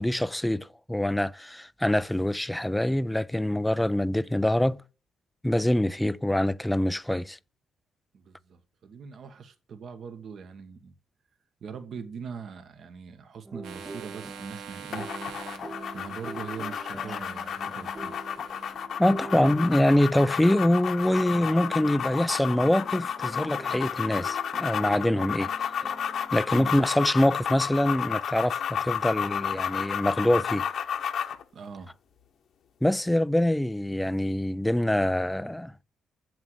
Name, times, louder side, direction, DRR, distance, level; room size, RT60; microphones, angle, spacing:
voice 1, 0.0-4.8 5.4-7.4 19.0-25.5 26.3-30.7 32.8-35.8, left 1 dB, 5° left, 0.5 m, -25 dB
voice 2, 8.1-10.9 11.6-15.1 15.9-18.2 26.5-26.9 31.5-31.9, right 6 dB, 60° right, 1.7 m, -41 dB
sound 1, 13.5-26.5, right 2 dB, 20° right, 0.9 m, -44 dB
sound 2, 13.6-18.8, right 7 dB, 80° right, 1.6 m, -46 dB
sound 3, 14.9-31.4, left 8 dB, 65° left, 1.2 m, -32 dB
7.8 x 7.2 x 8.1 m
cardioid pair, 90°, 0 cm